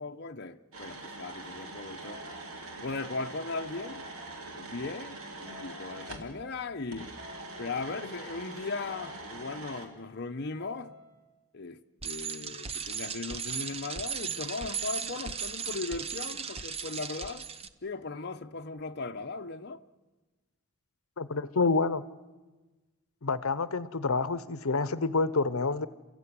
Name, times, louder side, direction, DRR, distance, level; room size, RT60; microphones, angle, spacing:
voice 1, 0.0-2.2 2.8-4.1 4.5-7.1 7.6-10.9 11.5-17.5 17.8-19.8, left 3 dB, 50° left, 0.9 m, -38 dB
sound 1, 0.7-6.3 6.9-9.9, right 2 dB, 80° right, 3.3 m, -43 dB
sound 2, 2.0-3.3 3.7-4.5 5.5-6.9 7.2-8.1 8.9-10.1 10.6-11.2, left 3 dB, 10° right, 6.0 m, -52 dB
Bicycle, 12.0-17.7, right 6 dB, 30° right, 0.9 m, -36 dB
voice 2, 21.2-22.0 23.2-25.9, left 4 dB, 75° left, 0.9 m, -28 dB
29.0 x 15.5 x 9.7 m
head